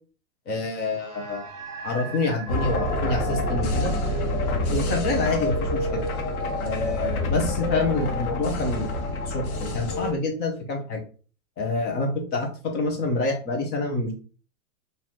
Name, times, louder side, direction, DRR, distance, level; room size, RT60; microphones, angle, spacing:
voice 1, 0.5-1.5 1.8-3.9 4.7-6.0 6.6-8.9 9.2-11.0 11.6-14.1, left 2 dB, 20° left, 3 dB, 0.8 m, -27 dB
sound 1, 1.0-5.7, right 5 dB, 25° right, 1.8 m, -42 dB
sound 2, 2.5-10.1, left 1 dB, 75° left, 1.1 m, -27 dB
3.9 x 2.7 x 3.0 m, 0.38 s
hypercardioid pair, 145°, 44 cm